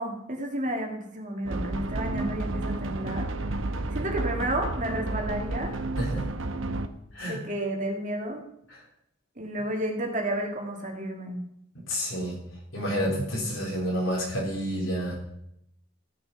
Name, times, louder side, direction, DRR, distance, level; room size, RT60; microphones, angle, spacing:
voice 1, 0.0-3.3 3.9-5.7 7.2-8.4 9.4-11.4, right 1 dB, 40° right, 1 dB, 2.1 m, -31 dB
sound 1, 1.5-6.9, right 2 dB, 70° right, 0.8 m, -31 dB
voice 2, 6.0-6.3 7.1-7.4 8.7-8.8 11.9-12.4 12.7-15.2, equal, 75° left, -4 dB, 3.8 m, -29 dB
15.0 x 6.9 x 5.7 m, 0.77 s
head